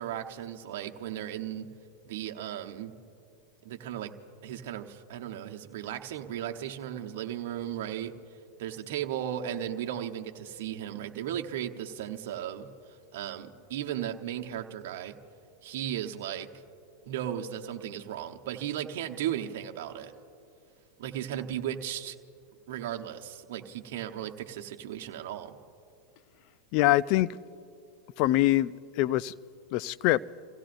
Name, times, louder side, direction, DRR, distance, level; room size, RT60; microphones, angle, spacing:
voice 1, 0.0-1.7 2.0-2.9 3.6-4.1 4.4-8.1 8.6-12.7 13.1-15.2 15.6-16.5 17.1-20.1 21.0-22.2 22.7-25.6, right 10 dB, 65° right, 1.0 m, -36 dB
voice 2, 26.7-27.3 28.2-29.3 29.7-30.2, left 16 dB, 55° left, 0.4 m, -24 dB
29.5 x 16.5 x 2.6 m
hypercardioid pair, 100°, 0 cm